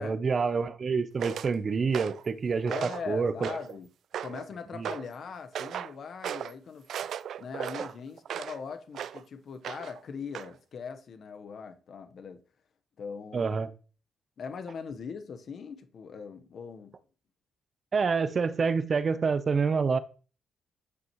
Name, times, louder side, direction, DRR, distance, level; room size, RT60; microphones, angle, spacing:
voice 1, 0.0-3.5 4.7-4.9 13.3-13.7 17.9-20.0, right 5 dB, 40° right, 0.7 m, -27 dB
sound 1, 1.2-1.5 1.9-2.3 2.7-3.1 3.4-3.8 4.1-4.5 4.8-5.1 5.5-5.9 6.2-6.5 6.9-8.6 8.9-9.2 9.6-10.0 10.3-10.5, right 9 dB, 65° right, 0.3 m, -36 dB
voice 2, 2.6-3.9 4.2-6.9 7.4-12.4 13.0-13.6 14.4-16.9, left 5 dB, 55° left, 1.0 m, -40 dB
9.6 x 6.0 x 3.1 m
cardioid pair, 90°, 0 cm